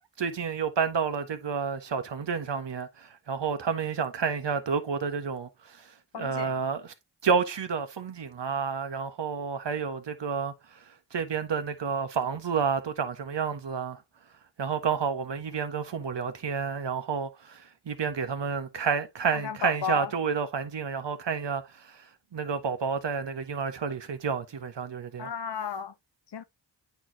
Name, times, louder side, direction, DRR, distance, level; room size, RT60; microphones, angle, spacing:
voice 1, 0.2-6.9 7.2-10.8 11.1-14.0 14.6-22.1 22.3-25.3, right 6 dB, 70° right, 1.5 m, -30 dB
voice 2, 6.1-6.6 19.3-20.1 25.2-25.9 26.3-26.4, left 6 dB, 65° left, 1.0 m, -33 dB
9.0 x 4.4 x 2.9 m
cardioid pair, 45°, 44 cm